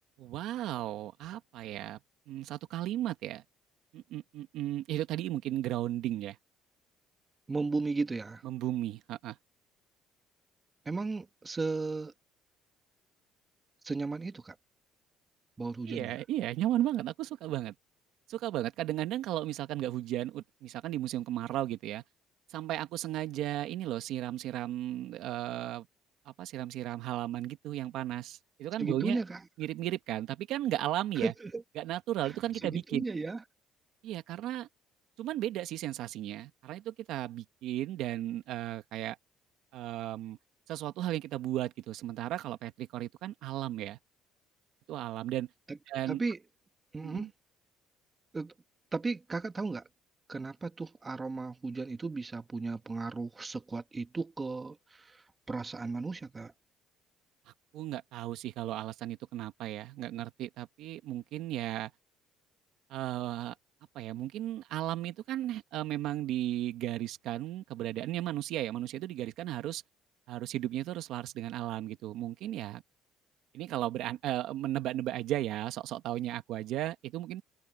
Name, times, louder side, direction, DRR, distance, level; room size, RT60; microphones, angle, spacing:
voice 1, 0.2-2.0 2.3-3.4 3.9-6.4 8.4-9.4 15.9-17.7 18.3-22.0 22.5-25.9 26.3-29.2 29.6-31.3 31.8-33.0 34.0-34.7 35.2-39.2 39.7-40.4 40.7-44.0 44.9-45.5 45.9-46.2 47.0-47.3 57.7-61.9 62.9-63.6 64.0-69.8 70.3-72.8 73.5-77.4, right 13 dB, 70° right, 1.7 m, -35 dB
voice 2, 7.5-8.4 10.9-12.1 13.8-14.6 15.6-16.2 28.8-29.4 31.2-31.6 32.2-32.3 32.6-33.4 45.7-45.8 46.1-46.4 46.9-47.3 48.3-48.5 48.9-49.8 50.3-56.5, right 3 dB, 20° right, 1.6 m, -35 dB
cardioid pair, 145°, 0 cm